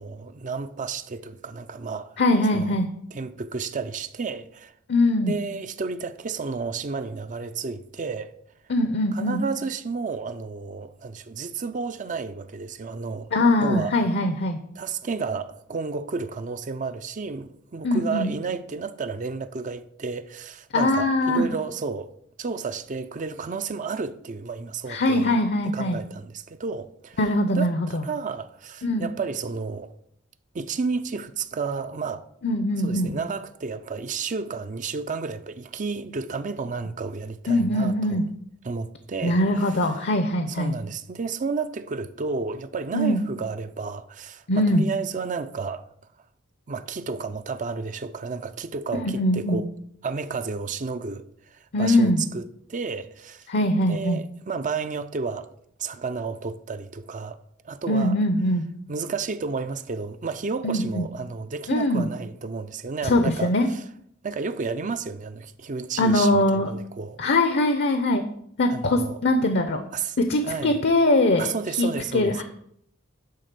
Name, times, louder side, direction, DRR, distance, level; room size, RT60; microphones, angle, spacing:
voice 1, 0.0-2.2 2.5-2.8 3.1-4.7 5.2-8.3 9.1-13.3 13.6-13.9 14.8-22.1 22.4-25.4 25.6-27.2 27.5-29.9 30.5-32.2 32.8-38.2 38.6-39.4 40.5-45.8 46.7-49.7 50.0-53.5 53.9-55.5 55.8-57.4 57.6-58.2 58.9-63.8 64.2-67.2 68.7-69.2 69.9-70.2 70.4-70.8 71.4-72.4, right 4 dB, 40° right, 0.5 m, -32 dB
voice 2, 2.2-2.9 4.9-5.3 8.7-9.4 13.3-14.6 17.8-18.3 20.7-21.5 24.9-26.0 27.2-28.0 28.8-29.1 32.4-33.2 37.5-38.3 39.2-40.7 42.9-43.2 44.5-44.8 48.9-49.6 51.7-52.2 53.5-54.2 57.9-58.6 60.6-61.0 61.7-62.1 63.0-63.7 66.0-66.7 67.2-68.2 68.6-69.8 70.2-71.5 71.8-72.4, left 1 dB, 55° left, 0.7 m, -22 dB
10.5 x 3.6 x 6.8 m
head